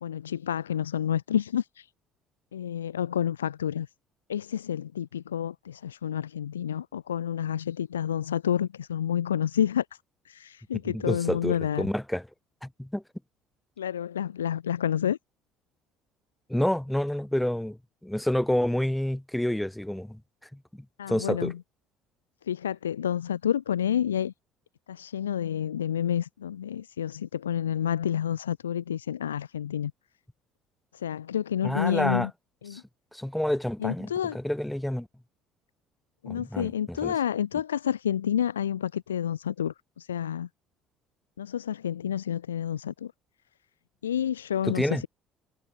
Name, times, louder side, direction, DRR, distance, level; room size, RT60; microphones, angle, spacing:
voice 1, 0.0-1.9 2.5-3.9 4.3-9.9 10.2-11.9 13.8-15.2 21.0-21.5 22.4-24.3 24.9-29.9 30.9-32.3 32.6-32.8 33.8-34.4 36.2-40.5 41.4-43.1 44.0-45.1, left 9 dB, 80° left, 1.1 m, -29 dB
voice 2, 10.9-12.3 12.6-13.0 16.5-20.2 20.5-20.6 21.1-21.5 31.6-32.3 32.7-32.8 33.1-35.1 36.3-37.1 44.6-45.0, left 1 dB, 5° left, 0.6 m, -28 dB
figure-of-eight pair, 55°, 0 cm